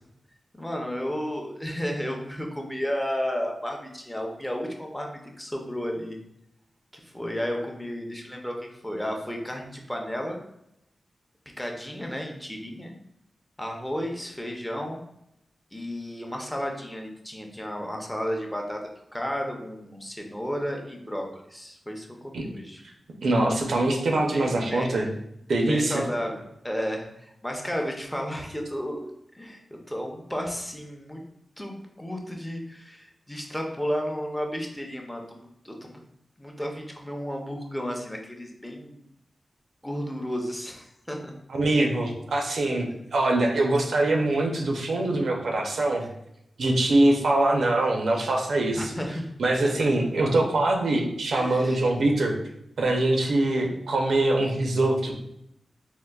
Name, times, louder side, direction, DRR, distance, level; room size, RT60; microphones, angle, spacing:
voice 1, 0.5-6.2 6.9-10.4 11.6-12.9 13.6-15.0 15.7-18.8 19.1-22.8 24.3-24.9 25.7-29.0 29.3-31.2 31.6-36.0 36.4-39.0 39.8-41.3 48.7-49.3 49.6-49.9 51.3-51.8, equal, 10° left, 1 dB, 0.5 m, -33 dB
voice 2, 23.2-25.1 25.5-26.0 41.5-46.0 46.6-48.9 49.4-52.3 52.8-55.1, right 2 dB, 80° right, 1 dB, 0.5 m, -23 dB
3.6 x 2.4 x 2.2 m, 0.80 s
wide cardioid pair, 90°, 0 cm